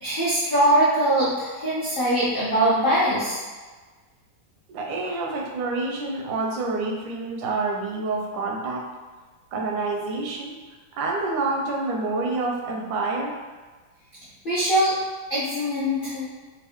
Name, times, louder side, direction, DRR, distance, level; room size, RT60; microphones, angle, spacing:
voice 1, 0.0-3.4 14.4-14.9 15.3-16.3, right 1 dB, 55° left, -10 dB, 0.5 m, -22 dB
voice 2, 4.7-8.9 9.5-10.5 10.9-13.4, right 3 dB, 90° right, 1 dB, 1.4 m, -27 dB
3.6 x 2.5 x 3.4 m, 1.3 s
omnidirectional pair, 2.0 m